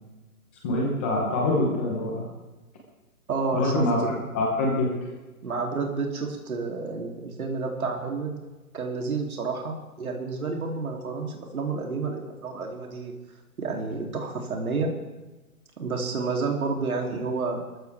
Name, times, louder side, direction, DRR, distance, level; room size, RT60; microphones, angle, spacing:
voice 1, 0.6-2.2 3.5-4.0 4.3-4.9, left 2 dB, 10° left, -1 dB, 0.8 m, -24 dB
voice 2, 3.3-4.2 5.4-8.3 8.7-13.2 13.6-14.9 15.8-17.6, right 4 dB, 65° right, 0 dB, 3.3 m, -30 dB
23.5 x 14.5 x 3.6 m, 1.1 s
hypercardioid pair, 165°, 46 cm